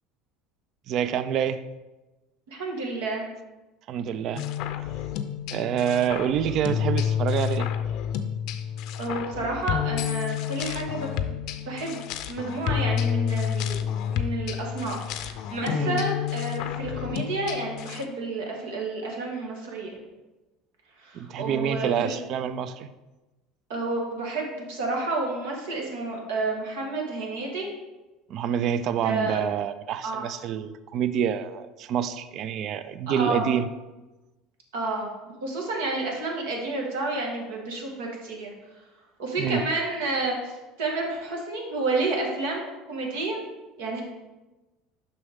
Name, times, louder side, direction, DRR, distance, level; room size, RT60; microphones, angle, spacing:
voice 1, 0.9-1.6 3.9-4.4 5.5-7.7 15.7-16.0 21.1-22.9 28.3-33.7 39.4-39.6, right 9 dB, 55° right, 13 dB, 0.4 m, -27 dB
voice 2, 2.5-3.3 9.0-13.9 14.1-20.0 21.0-22.1 23.7-27.7 28.9-29.4 30.0-30.3 33.1-33.5 34.7-35.1 35.4-38.5 39.2-42.6 42.9-43.4 43.8-44.0, right 2 dB, 85° right, 0 dB, 1.7 m, -30 dB
sound 1, 4.4-18.1, left 9 dB, 65° left, 0.5 m, -29 dB
6.9 x 5.5 x 3.6 m, 1.1 s
supercardioid pair, 90°, 0 cm